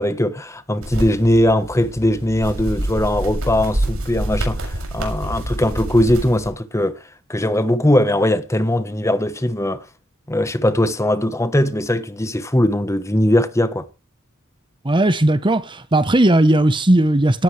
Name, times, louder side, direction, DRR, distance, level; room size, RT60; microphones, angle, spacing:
voice 1, 0.0-7.0 7.3-9.8 10.3-13.8, left 1 dB, 15° left, 1.2 m, -19 dB
sound 1, 0.8-6.5, right 1 dB, 80° right, 7.1 m, -27 dB
voice 2, 14.8-17.4, right 1 dB, 20° right, 1.0 m, -16 dB
17.5 x 14.0 x 3.4 m
head